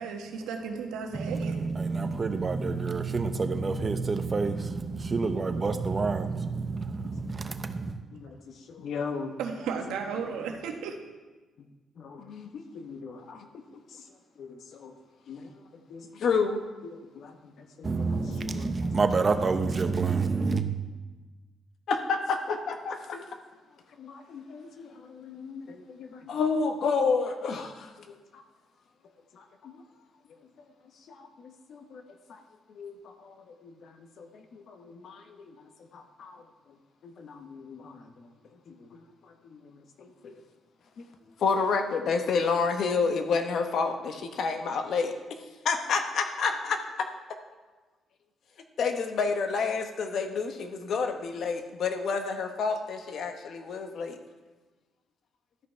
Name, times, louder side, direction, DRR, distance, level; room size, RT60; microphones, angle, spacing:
voice 1, 0.0-1.7 9.4-11.0, right 6 dB, 90° right, 1.1 m, -34 dB
voice 2, 1.1-7.9 17.8-20.6, right 4 dB, 35° right, 0.8 m, -28 dB
voice 3, 8.7-9.4 10.2-10.3 12.0-13.5 13.9-14.0 14.4-14.9 15.3-18.9 21.9-23.3 24.0-28.4 29.3-29.8 31.1-32.0 32.3-32.4 32.7-32.9 33.2-35.4 35.9-36.4 37.0-38.1 38.7-39.0 39.4-40.3 41.4-45.1 45.6-47.1 48.8-54.2, left 5 dB, 65° left, 1.0 m, -31 dB
12.5 x 5.5 x 4.5 m
cardioid pair, 90°, 0 cm